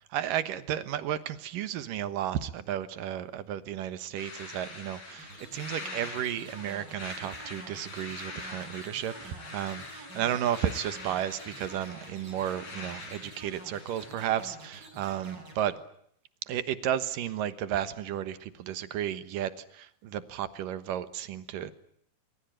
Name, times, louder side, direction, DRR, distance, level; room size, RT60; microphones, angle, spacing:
voice 1, 0.1-15.8 16.5-21.7, right 10 dB, 75° right, 13 dB, 2.8 m, -33 dB
sound 1, 4.2-14.1, left 3 dB, 65° left, 7.1 m, -44 dB
sound 2, 5.2-15.6, right 2 dB, 30° right, 7.6 m, -48 dB
24.0 x 23.5 x 9.1 m, 0.69 s
omnidirectional pair, 4.1 m